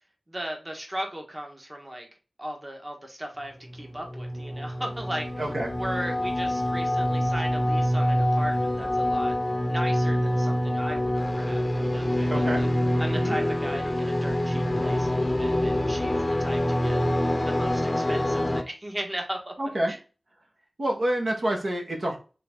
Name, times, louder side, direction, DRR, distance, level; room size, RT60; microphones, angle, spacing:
voice 1, 0.3-2.1 2.4-5.3 5.8-9.4 9.7-12.7 13.0-17.0 17.4-19.5 19.9-20.0, equal, 25° right, 2 dB, 1.2 m, -37 dB
sound 1, 3.7-18.6, left 1 dB, 30° left, 0.6 m, -26 dB
voice 2, 5.4-5.7 12.3-12.7 13.1-13.4 19.6-19.9 20.8-22.2, right 1 dB, 70° right, 0 dB, 1.3 m, -28 dB
3.8 x 3.6 x 3.5 m, 0.34 s
wide cardioid pair, 60°, 0 cm